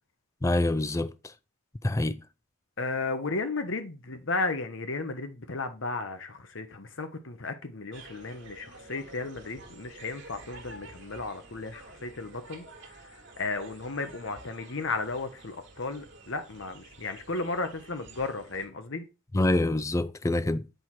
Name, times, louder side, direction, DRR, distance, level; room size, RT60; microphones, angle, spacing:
voice 1, 0.4-1.1 1.8-2.2 19.3-20.7, left 2 dB, 15° left, 0.3 m, -25 dB
voice 2, 2.8-13.0 13.4-19.0, left 3 dB, 55° left, 0.9 m, -34 dB
sound 1, 7.9-18.7, right 2 dB, 55° right, 1.5 m, -50 dB
7.9 x 4.7 x 4.3 m
head